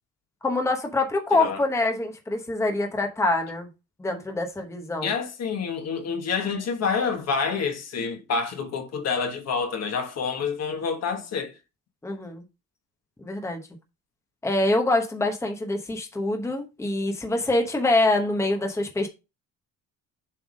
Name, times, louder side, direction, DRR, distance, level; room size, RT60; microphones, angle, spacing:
voice 1, 0.4-3.7 4.0-5.1 12.0-12.4 13.2-13.6 14.4-19.1, left 2 dB, 10° left, 1.0 m, -25 dB
voice 2, 1.3-1.6 5.0-11.6, left 5 dB, 50° left, 1.3 m, -28 dB
7.4 x 3.5 x 5.0 m
cardioid pair, 150°, 33 cm